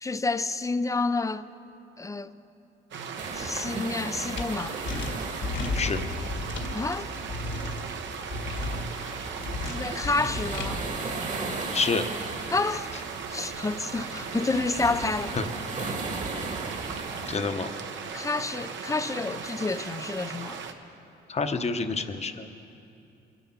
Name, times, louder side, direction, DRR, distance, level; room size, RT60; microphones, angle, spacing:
voice 1, 0.0-1.5 2.0-2.4 3.3-4.8 6.7-7.1 9.6-10.8 12.5-12.9 13.3-15.4 18.1-20.6, left 3 dB, 15° left, 0.5 m, -29 dB
sound 1, 2.9-20.7, right 6 dB, 70° right, 1.0 m, -38 dB
sound 2, 3.2-17.4, right 3 dB, 40° right, 1.5 m, -37 dB
sound 3, 4.4-4.5 4.9-6.8 7.3-7.8 8.3-8.9 9.4-10.7, left 2 dB, 65° left, 1.8 m, -32 dB
voice 2, 11.7-12.1 15.3-15.4 17.3-17.7 21.3-22.5, left 4 dB, 35° left, 1.0 m, -28 dB
23.0 x 8.0 x 5.9 m
cardioid pair, 90°, 20 cm